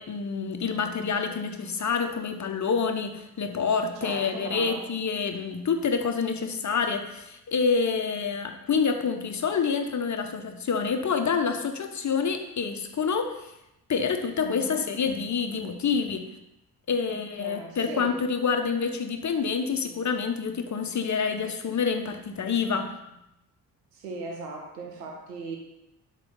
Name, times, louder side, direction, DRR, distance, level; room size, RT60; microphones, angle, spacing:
voice 1, 0.0-13.5 13.9-16.3 16.9-22.9, left 5 dB, 35° left, 6 dB, 1.3 m, -27 dB
voice 2, 4.0-4.8 14.4-14.9 17.1-18.2 23.9-25.6, right 3 dB, 80° right, 1 dB, 1.6 m, -38 dB
11.5 x 4.1 x 5.6 m, 0.86 s
figure-of-eight pair, 40°, 47 cm